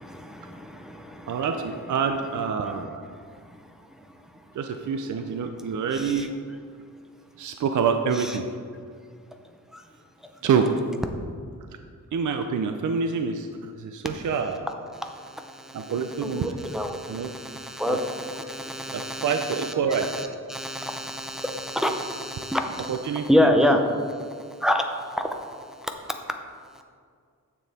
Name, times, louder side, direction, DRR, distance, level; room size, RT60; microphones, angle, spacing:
voice 1, 0.0-1.5 2.6-2.8 3.1-3.7 5.9-6.3 8.2-8.4 9.7-9.8 14.9-23.8 24.6-24.8 25.2-25.3 25.8-25.9, left 1 dB, ahead, 4 dB, 0.6 m, -28 dB
voice 2, 1.3-3.1 4.6-6.3 7.4-8.4 10.4-10.7 12.1-14.7 15.7-16.5 17.1-17.3 17.9-18.0 18.9-20.1 22.9-23.5, right 6 dB, 65° right, 6 dB, 0.6 m, -26 dB
9.9 x 7.0 x 4.2 m, 2.1 s
wide cardioid pair, 160°, 33 cm